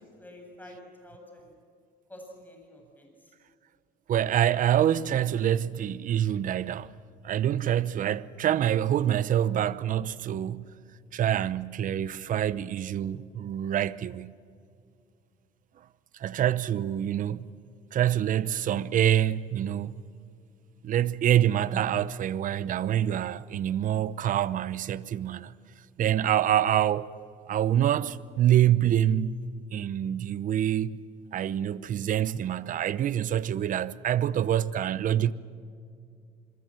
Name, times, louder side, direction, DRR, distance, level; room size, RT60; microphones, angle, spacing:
voice 1, 0.2-1.5 2.1-3.1 17.4-17.5 35.3-35.4, left 1 dB, 10° left, 7.5 m, -48 dB
voice 2, 4.1-6.9 7.2-10.7 11.1-14.3 16.2-17.4 17.9-19.9 20.8-25.5 26.0-27.1 27.5-29.4 29.7-31.0 31.3-35.3, right 11 dB, 50° right, 0.8 m, -26 dB
26.5 x 22.0 x 7.6 m
cardioid pair, 110°, 17 cm